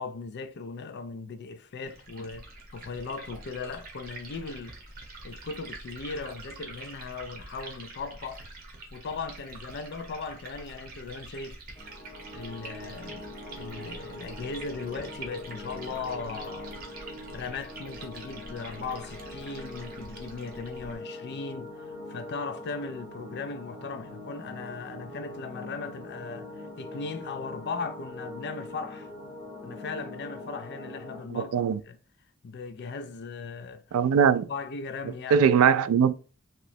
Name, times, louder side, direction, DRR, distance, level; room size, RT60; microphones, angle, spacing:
voice 1, 0.0-4.8 5.2-8.4 8.9-11.6 12.3-13.3 13.5-16.8 17.3-29.1 29.6-32.0 32.4-34.0 34.5-35.4, left 4 dB, 55° left, 0.4 m, -38 dB
Liquid, 1.8-20.9, right 2 dB, 45° right, 0.9 m, -45 dB
sound 1, 11.8-31.2, left 1 dB, 25° left, 1.1 m, -43 dB
voice 2, 31.3-31.8 33.9-34.5 35.3-36.1, right 7 dB, 85° right, 0.3 m, -21 dB
3.0 x 2.9 x 2.6 m
head